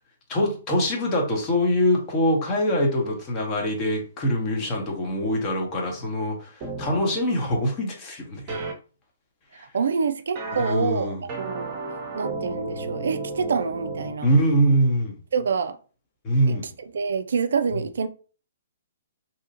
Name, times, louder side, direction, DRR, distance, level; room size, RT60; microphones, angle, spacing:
voice 1, 0.3-8.6 9.5-9.7 10.5-11.2 14.2-15.2 16.2-16.7, equal, 30° left, 1.0 m, -24 dB
sound 1, 6.6-7.0 8.5-8.7 10.4-10.7 11.3-14.1, right 3 dB, 35° right, 0.8 m, -33 dB
voice 2, 9.6-11.8 12.1-14.3 15.3-15.8 16.5-18.1, right 5 dB, 65° right, 0.3 m, -27 dB
2.8 x 2.3 x 2.8 m
figure-of-eight pair, 125°, 0 cm